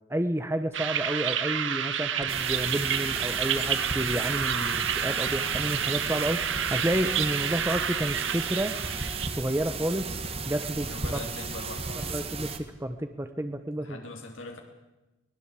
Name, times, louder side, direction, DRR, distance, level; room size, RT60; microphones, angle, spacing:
voice 1, 0.1-8.7 9.3-11.2 12.1-12.5 12.8-14.0, right 1 dB, 15° right, 9 dB, 1.0 m, -30 dB
sound 1, 0.7-9.3, right 8 dB, 80° right, 1.6 m, -29 dB
sound 2, 2.2-3.6 4.1-5.3 6.3-6.4 7.4-7.5 8.0-8.5, left 2 dB, 65° left, 4.6 m, -52 dB
sound 3, 2.3-12.6, right 4 dB, 30° right, 2.0 m, -35 dB
voice 2, 10.9-12.2 13.8-14.6, left 2 dB, 85° left, 2 dB, 3.3 m, -42 dB
23.5 x 19.5 x 8.3 m, 1.0 s
head